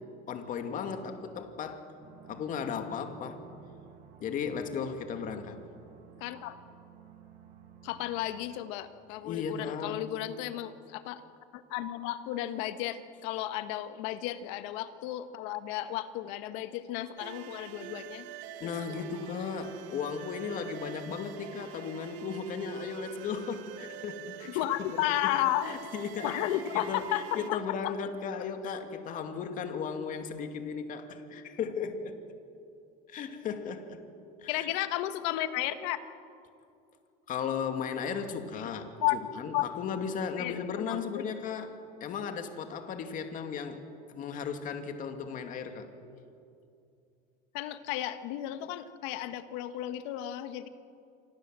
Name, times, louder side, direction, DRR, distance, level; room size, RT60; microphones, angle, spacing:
voice 1, 0.3-1.9 2.3-3.4 4.2-5.6 9.2-10.0 18.6-24.5 24.8-25.3 25.6-26.4 26.7-32.2 33.1-34.0 34.4-34.7 37.3-45.9, left 6 dB, 40° left, 6 dB, 2.5 m, -36 dB
sound 1, 2.0-8.6, right 9 dB, 40° right, 7.5 m, -54 dB
voice 2, 6.2-6.6 7.8-11.2 11.5-18.3 18.6-19.0 24.5-25.7 26.2-27.9 34.5-36.0 39.0-39.2 39.5-39.7 40.4-40.6 40.9-41.3 47.5-50.7, left 13 dB, 70° left, 10 dB, 1.6 m, -33 dB
sound 2, 17.2-27.5, right 9 dB, 65° right, 2.5 m, -45 dB
28.0 x 26.0 x 7.7 m, 2.6 s
cardioid pair, 140°, 20 cm